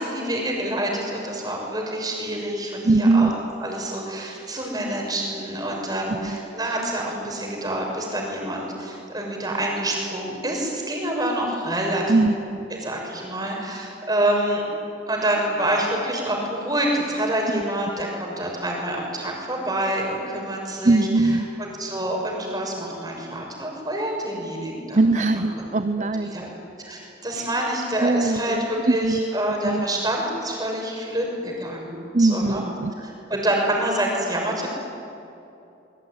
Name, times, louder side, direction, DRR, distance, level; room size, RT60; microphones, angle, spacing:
voice 1, 0.0-3.3 3.6-12.0 12.8-14.6 15.1-25.2 26.0-32.6 33.0-34.7, right 1 dB, 20° right, 0 dB, 6.5 m, -27 dB
voice 2, 2.8-3.4 6.1-6.4 12.1-12.7 17.5-17.6 20.8-21.5 24.9-26.4 27.3-27.5 28.0-29.2 29.6-29.8 32.1-32.9, right 2 dB, 40° right, 9 dB, 0.8 m, -21 dB
25.5 x 22.5 x 10.0 m, 2.8 s
head